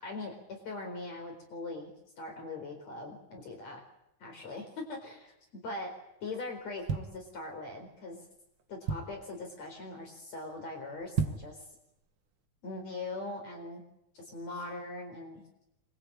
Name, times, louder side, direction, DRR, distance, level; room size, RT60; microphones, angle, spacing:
voice 1, 0.0-1.9 2.2-3.8 4.2-5.3 5.6-5.9 6.2-8.2 8.7-11.6 12.6-13.8 14.1-15.4, left 2 dB, 60° left, 3 dB, 5.6 m, -41 dB
sound 1, 6.6-7.8 8.3-8.4 8.6-9.4 9.8-10.1 10.4-10.5 11.0-11.6 12.0-12.1, right 6 dB, 50° right, 2.0 m, -34 dB
26.5 x 21.0 x 8.8 m, 0.85 s
omnidirectional pair, 3.4 m